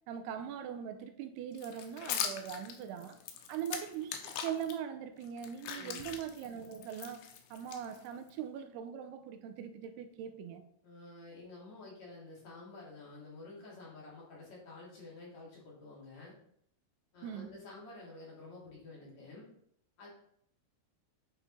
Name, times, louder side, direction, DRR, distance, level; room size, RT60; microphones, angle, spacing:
voice 1, 0.1-3.2 3.5-10.7 17.2-17.5, right 8 dB, 85° right, 2.7 m, -41 dB
sound 1, 1.6-4.7 5.2-8.3, left 8 dB, 85° left, 3.1 m, -41 dB
voice 2, 5.7-6.1 10.8-16.4 17.1-19.5 20.0-20.1, left 2 dB, 45° left, 3.8 m, -50 dB
9.2 x 5.4 x 4.3 m
omnidirectional pair, 4.7 m